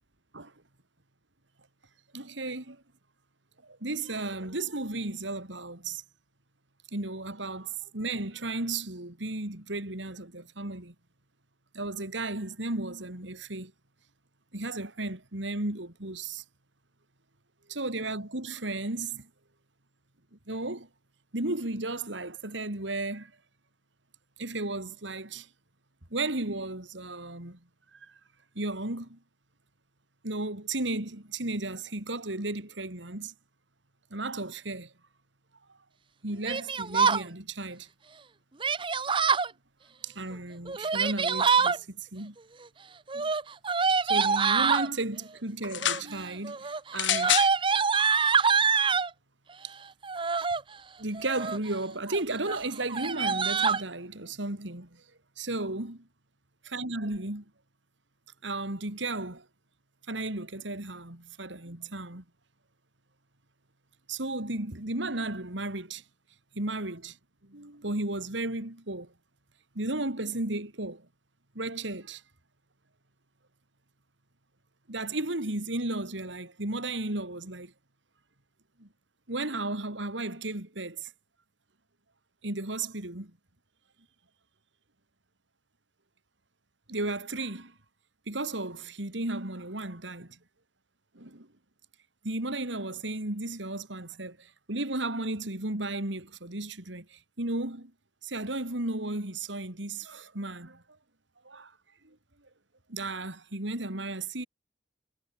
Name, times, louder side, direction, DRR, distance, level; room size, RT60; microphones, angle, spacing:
voice 1, 2.1-2.8 3.6-6.0 6.9-10.9 11.7-13.7 14.5-16.4 17.7-19.3 20.5-20.9 21.3-23.3 24.4-25.5 26.1-27.6 27.9-28.2 28.6-29.2 30.2-33.3 34.1-34.9 36.2-37.9 40.0-42.4 43.1-43.3 44.0-47.6 49.6-49.7 51.0-55.0 55.4-56.0 56.7-57.4 58.4-59.5 60.1-62.2 64.1-66.0 66.6-67.2 67.4-69.1 69.8-71.1 71.6-72.2 74.9-77.7 78.8-78.9 79.3-81.1 82.4-83.3 86.9-87.7 88.3-90.4 91.2-91.5 92.2-97.9 98.2-100.8 101.4-101.7 102.0-102.2 102.9-104.5, right 2 dB, 75° right, 3.5 m, -34 dB
Yell, 36.4-37.2 38.6-39.5 40.7-41.8 43.1-44.9 45.7-46.1 46.4-49.1 50.0-50.6 51.1-51.7 52.1-52.2 52.5-52.6 52.9-53.8, right 5 dB, 25° right, 0.7 m, -25 dB
sound 1, 45.6-46.1 46.9-47.5 48.4-48.5, left 11 dB, 80° left, 2.2 m, -27 dB
head